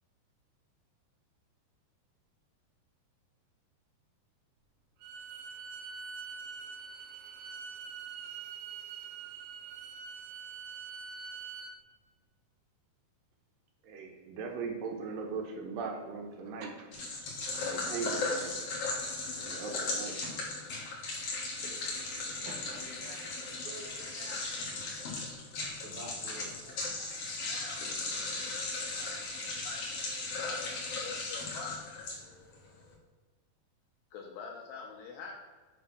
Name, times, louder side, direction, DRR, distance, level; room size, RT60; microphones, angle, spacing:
Bowed string instrument, 5.0-11.8, right 5 dB, 90° right, 3.0 m, -44 dB
voice 1, 13.8-17.1 17.5-18.5 19.4-20.2, right 5 dB, 75° right, 2 dB, 2.3 m, -39 dB
sound 1, 16.9-32.5, left 3 dB, 50° left, 2.2 m, -37 dB
voice 2, 22.3-25.2 25.6-27.2, right 1 dB, 55° right, 0 dB, 1.5 m, -50 dB
voice 3, 27.4-29.8 30.1-30.6 31.0-31.8 34.1-35.3, left 5 dB, 75° left, 0 dB, 2.1 m, -46 dB
9.5 x 3.5 x 6.0 m, 1.3 s
omnidirectional pair, 4.7 m